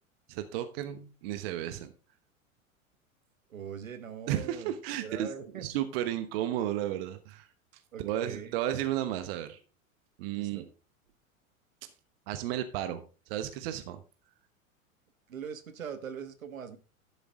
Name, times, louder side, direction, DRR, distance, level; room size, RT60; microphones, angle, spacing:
voice 1, 0.3-1.9 4.3-5.3 5.5-7.5 8.0-9.6 10.2-10.6 12.3-13.0 13.3-14.0, right 12 dB, 45° right, 10 dB, 1.1 m, -33 dB
voice 2, 3.5-5.7 7.9-8.5 10.3-10.7 15.3-16.8, right 7 dB, 70° right, 10 dB, 1.3 m, -42 dB
12.0 x 7.0 x 3.6 m, 0.33 s
figure-of-eight pair, 90°, 42 cm